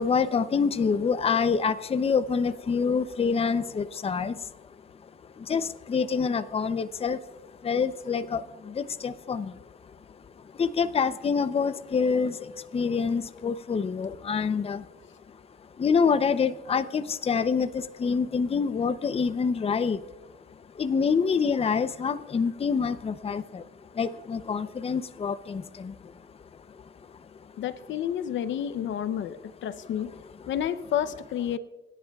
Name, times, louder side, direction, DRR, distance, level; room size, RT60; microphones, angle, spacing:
voice 1, 0.0-4.6 5.0-14.9 15.3-15.4 15.8-20.1 20.5-27.5, left 5 dB, 30° left, 12 dB, 0.6 m, -27 dB
voice 2, 27.6-30.1 30.5-31.6, left 10 dB, 70° left, 12 dB, 0.7 m, -30 dB
26.0 x 10.5 x 2.3 m, 1.2 s
cardioid pair, 90°, 20 cm